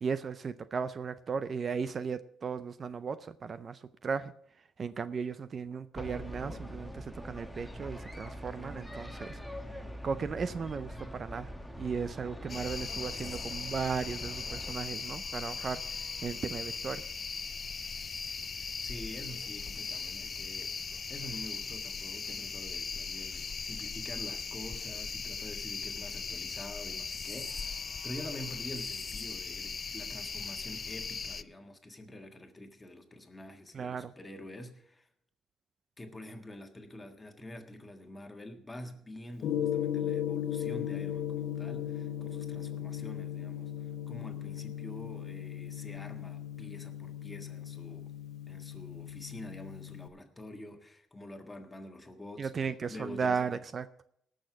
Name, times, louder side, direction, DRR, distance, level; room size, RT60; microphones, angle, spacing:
voice 1, 0.0-4.3 4.8-9.4 10.0-17.1 33.7-34.1 52.4-53.9, right 5 dB, 40° right, 13 dB, 0.5 m, -36 dB
sound 1, 5.9-14.7, equal, ahead, 1.2 m, -43 dB
sound 2, 12.5-31.4, left 5 dB, 35° left, 0.4 m, -39 dB
voice 2, 18.6-20.7 21.1-35.1 36.0-48.1 48.5-53.4, left 1 dB, 15° left, 5 dB, 1.6 m, -47 dB
Gong, 39.4-50.1, left 10 dB, 70° left, 0.9 m, -37 dB
18.0 x 6.4 x 6.0 m, 0.72 s
cardioid pair, 95°, 0 cm